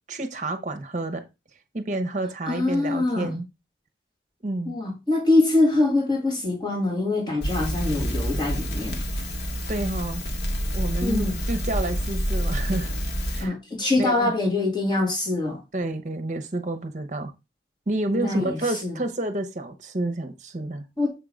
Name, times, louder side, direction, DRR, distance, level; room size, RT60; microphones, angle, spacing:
voice 1, 0.1-1.2 1.7-3.5 4.4-4.8 9.7-10.2 10.7-12.9 13.3-13.5 14.0-14.3 15.7-17.3 17.9-20.8, right 2 dB, 40° right, 0.9 m, -29 dB
voice 2, 2.5-3.4 4.7-9.1 11.0-11.4 13.4-15.6 18.1-18.9 21.0-21.1, left 2 dB, 25° left, 2.4 m, -24 dB
Crackle, 7.4-13.5, equal, 70° left, 1.6 m, -28 dB
6.9 x 3.7 x 5.1 m
head